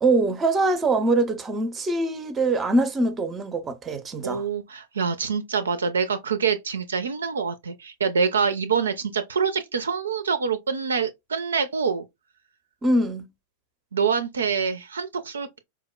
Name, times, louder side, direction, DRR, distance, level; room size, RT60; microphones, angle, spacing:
voice 1, 0.0-4.4 12.8-13.3, right 2 dB, 20° right, 0.5 m, -23 dB
voice 2, 4.2-12.1 13.9-15.6, right 6 dB, 70° right, 0.4 m, -26 dB
4.5 x 2.1 x 2.2 m
figure-of-eight pair, 90°, 0 cm